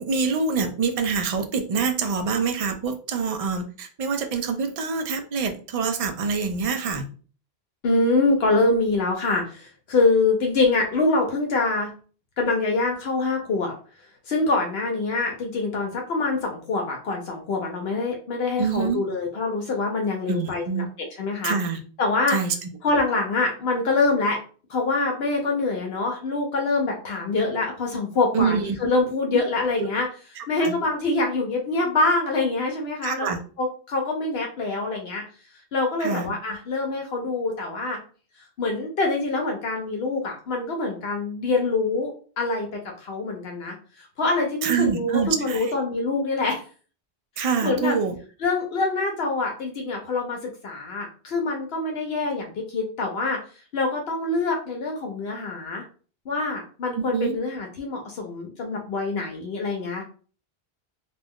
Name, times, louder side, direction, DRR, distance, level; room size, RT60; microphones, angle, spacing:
voice 1, 0.0-7.0 18.6-19.0 20.3-20.9 21.4-21.8 22.3-22.7 28.3-28.8 30.4-30.8 33.0-33.4 36.0-36.3 44.6-45.7 47.4-48.2 56.9-57.4, right 5 dB, 55° right, 6 dB, 0.4 m, -26 dB
voice 2, 7.8-11.9 12.4-13.7 14.3-20.9 21.2-21.6 22.0-22.4 22.8-24.4 24.7-30.1 30.5-33.3 33.6-35.2 35.7-38.0 38.6-42.7 43.0-46.6 47.6-48.0 48.4-53.4 53.7-55.8 56.3-60.0, left 3 dB, 75° left, 1 dB, 0.8 m, -25 dB
2.5 x 2.3 x 3.4 m, 0.40 s
omnidirectional pair, 1.1 m